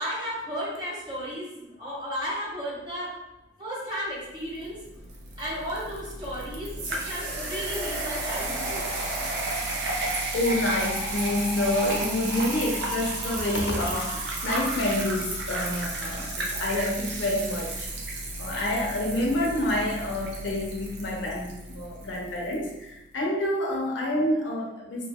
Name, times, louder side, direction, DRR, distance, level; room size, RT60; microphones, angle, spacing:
voice 1, 0.0-3.1 3.6-4.8 5.4-9.0, equal, 25° right, -7 dB, 1.2 m, -34 dB
sound 1, 4.6-22.6, right 2 dB, 65° right, 0.6 m, -33 dB
voice 2, 10.3-17.9 18.4-25.1, left 1 dB, 85° left, -1 dB, 0.6 m, -28 dB
2.7 x 2.7 x 2.3 m, 0.96 s
head